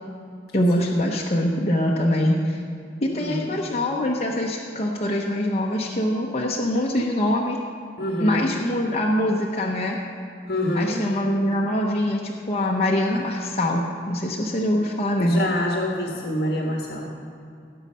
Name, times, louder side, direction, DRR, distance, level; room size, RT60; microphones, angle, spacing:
voice 1, 0.5-2.6 3.0-7.6 8.2-10.0 10.7-15.5, left 1 dB, 35° left, -3 dB, 0.9 m, -23 dB
voice 2, 3.1-3.5 8.0-8.5 10.5-11.0 15.2-17.1, left 1 dB, 60° left, 0 dB, 1.4 m, -26 dB
17.5 x 7.4 x 5.6 m, 2.5 s
head